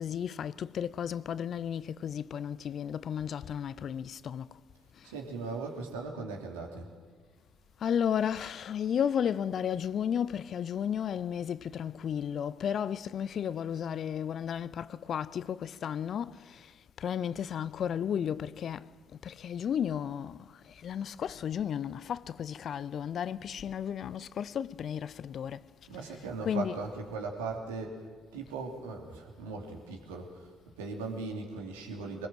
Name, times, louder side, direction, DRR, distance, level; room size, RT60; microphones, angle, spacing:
voice 1, 0.0-4.6 4.9-5.1 7.8-25.7 26.4-26.8, left 8 dB, 55° left, 0.6 m, -33 dB
voice 2, 5.0-6.9 25.9-28.0 28.3-30.5 30.8-32.3, right 4 dB, 85° right, 2.9 m, -38 dB
23.5 x 21.0 x 7.7 m
hypercardioid pair, 50°, 0 cm